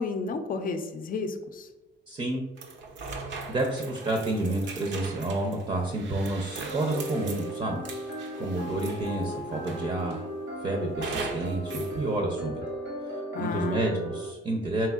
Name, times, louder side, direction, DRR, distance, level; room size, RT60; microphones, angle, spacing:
voice 1, 0.0-1.7 13.3-14.0, left 3 dB, 45° left, 8 dB, 0.5 m, -32 dB
voice 2, 2.1-2.4 3.5-10.2 10.6-12.6 13.1-14.9, right 2 dB, 30° right, 2 dB, 0.6 m, -30 dB
sound 1, 2.6-9.2 9.7-10.3 11.0-11.9, right 4 dB, 65° right, 0.7 m, -40 dB
sound 2, 6.7-14.3, equal, 85° right, 1.4 m, -37 dB
4.4 x 3.6 x 2.4 m, 1.1 s
cardioid pair, 90°, 20 cm